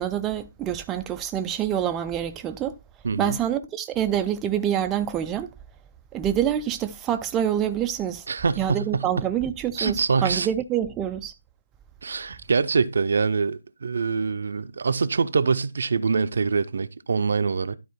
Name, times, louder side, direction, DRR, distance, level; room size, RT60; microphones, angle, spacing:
voice 1, 0.0-2.7 3.2-5.5 6.1-8.3 8.6-11.3, right 10 dB, 15° right, 0.4 m, -26 dB
voice 2, 3.0-3.4 8.3-9.2 9.8-10.5 12.0-17.8, right 5 dB, 55° right, 0.6 m, -24 dB
12.0 x 4.3 x 4.1 m
figure-of-eight pair, 145°, 0 cm